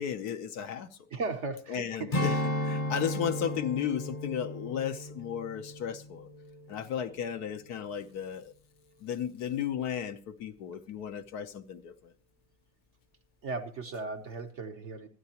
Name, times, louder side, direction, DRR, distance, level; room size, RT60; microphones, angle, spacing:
voice 1, 0.0-1.0 1.7-2.4 2.6-6.3 6.7-8.5 9.0-12.1, left 8 dB, 70° left, 1.3 m, -34 dB
voice 2, 1.1-2.1 13.4-15.1, right 3 dB, 50° right, 1.1 m, -36 dB
Strum, 2.1-6.8 7.2-7.4, left 1 dB, 30° left, 0.9 m, -34 dB
25.5 x 9.6 x 2.9 m
omnidirectional pair, 1.8 m